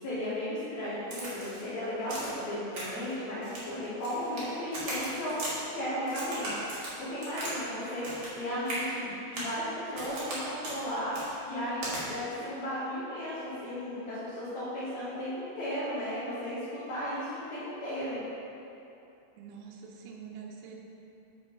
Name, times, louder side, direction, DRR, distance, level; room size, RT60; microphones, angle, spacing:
voice 1, 0.0-5.4 5.7-18.2, equal, 75° left, -12 dB, 1.7 m, -35 dB
Crack, 1.1-1.6 2.1-2.4 2.7-3.1 3.4-4.4 4.7-5.5 6.1-7.5 7.8-8.4 8.6-8.8 9.3-9.5 9.9-10.4 10.6-10.8 11.1-11.3 11.8-12.0, right 1 dB, 65° right, 1.3 m, -37 dB
voice 2, 19.4-20.8, right 6 dB, 80° right, -2 dB, 2.5 m, -45 dB
6.7 x 6.2 x 5.0 m, 2.8 s
omnidirectional pair, 5.7 m